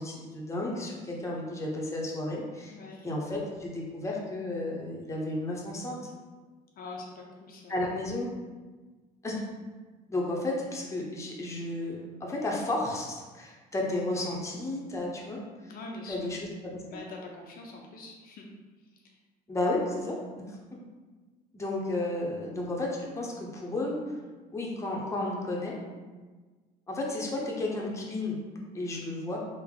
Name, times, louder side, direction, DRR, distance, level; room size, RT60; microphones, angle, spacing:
voice 1, 0.0-2.8 3.0-6.0 7.7-8.3 9.2-9.4 10.1-15.4 16.1-17.0 19.5-20.2 20.5-20.6 21.5-24.0 24.5-25.8 26.9-28.4 28.7-29.4, left 2 dB, 15° left, -3 dB, 0.7 m, -32 dB
voice 2, 2.7-3.1 6.8-7.9 15.7-16.2 16.9-18.5, left 2 dB, 60° left, 0 dB, 0.5 m, -43 dB
3.4 x 2.1 x 3.6 m, 1.4 s
cardioid pair, 110°, 17 cm